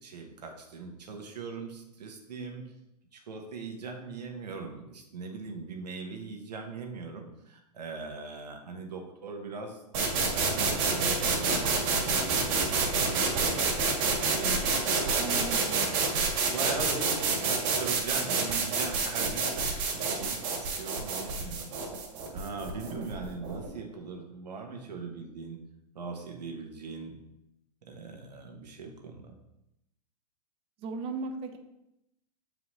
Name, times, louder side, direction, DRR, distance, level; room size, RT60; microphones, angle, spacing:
voice 1, 0.0-2.6 3.1-9.8 10.2-15.1 16.5-21.7 22.3-25.6 25.9-27.1 27.9-29.3, right 4 dB, 85° right, 3 dB, 1.4 m, -40 dB
sound 1, 9.9-23.7, right 4 dB, 50° right, 1.8 m, -28 dB
voice 2, 15.2-16.1 22.9-23.1 30.8-31.6, right 3 dB, 30° right, 6 dB, 0.8 m, -37 dB
7.3 x 4.8 x 3.2 m, 0.86 s
hypercardioid pair, 135°, 21 cm